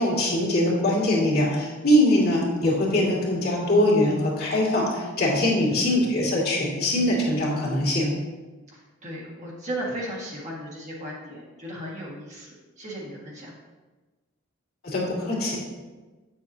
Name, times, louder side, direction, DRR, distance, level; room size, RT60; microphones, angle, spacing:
voice 1, 0.0-8.1 14.8-15.6, left 1 dB, 50° left, -4 dB, 2.3 m, -22 dB
voice 2, 8.7-13.5, right 1 dB, 35° right, -4 dB, 1.6 m, -36 dB
8.5 x 7.0 x 2.8 m, 1.3 s
head